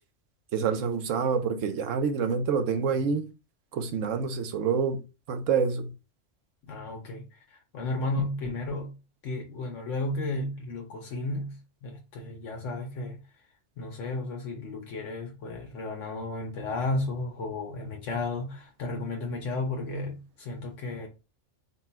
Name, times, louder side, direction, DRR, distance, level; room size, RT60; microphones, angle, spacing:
voice 1, 0.5-3.3 3.7-5.0 5.3-5.9, right 6 dB, 85° right, 1.1 m, -27 dB
voice 2, 6.6-9.0 9.2-13.2 13.8-21.1, left 2 dB, 80° left, 1.1 m, -33 dB
4.2 x 2.3 x 4.2 m
omnidirectional pair, 1.3 m